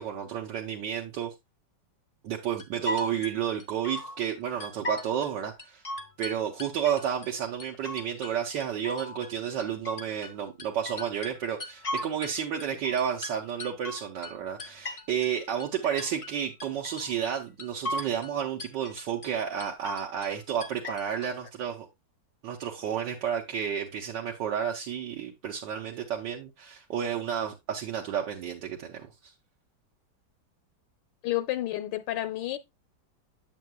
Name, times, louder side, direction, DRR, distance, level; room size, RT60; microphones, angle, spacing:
voice 1, 0.0-1.3 2.2-5.8 6.2-21.9 22.4-29.3, right 8 dB, 80° right, 1.6 m, -31 dB
sound 1, 2.6-4.3 4.6-5.3 5.6-7.3 7.6-8.3 8.6-12.4 12.6-15.3 15.6-16.3 16.6-17.3 17.6-18.3 18.6-19.3 19.6-20.3 20.6-21.3, left 1 dB, 65° left, 0.3 m, -37 dB
voice 2, 31.2-32.6, left 15 dB, 85° left, 1.3 m, -30 dB
8.3 x 7.7 x 2.3 m
omnidirectional pair, 1.9 m